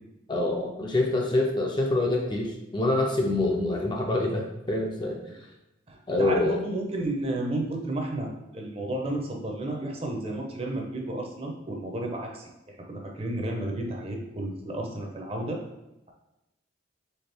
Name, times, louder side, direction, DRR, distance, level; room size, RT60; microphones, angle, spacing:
voice 1, 0.3-5.2 6.1-6.6, left 2 dB, 25° left, 0 dB, 0.4 m, -26 dB
voice 2, 5.9-12.5 12.9-15.6, right 1 dB, 30° right, 1 dB, 0.6 m, -32 dB
4.3 x 3.7 x 3.4 m, 0.93 s
head